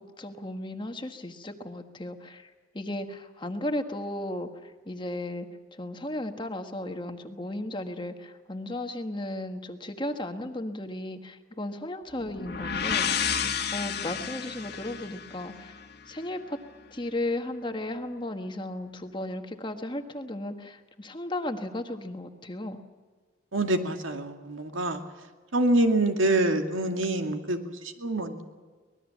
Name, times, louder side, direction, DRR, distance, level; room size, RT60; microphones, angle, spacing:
voice 1, 0.0-2.5 2.7-5.5 5.8-13.1 13.7-15.7 16.1-16.6 16.9-22.8, left 1 dB, 25° left, 6 dB, 1.4 m, -35 dB
sound 1, 12.2-16.0, left 7 dB, 50° left, 1.7 m, -31 dB
voice 2, 23.5-25.0 25.5-28.4, right 1 dB, 75° right, 5 dB, 2.3 m, -26 dB
24.5 x 20.0 x 7.3 m, 1.4 s
head